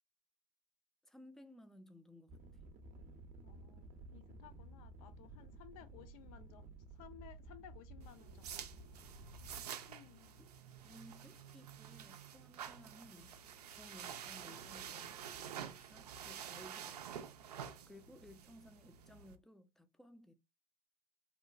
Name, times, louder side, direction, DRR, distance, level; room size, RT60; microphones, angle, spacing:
voice 1, 1.0-2.4 10.4-10.5 10.8-13.3 13.7-17.3 17.9-20.3, left 1 dB, ahead, 0.4 m, -59 dB
sound 1, 2.3-9.7, right 2 dB, 40° right, 0.6 m, -54 dB
voice 2, 3.4-6.6 6.9-9.0 9.9-10.4, left 10 dB, 65° left, 0.6 m, -59 dB
sound 2, 8.0-19.3, right 8 dB, 85° right, 0.4 m, -49 dB
2.8 x 2.1 x 2.4 m
hypercardioid pair, 80°, 20 cm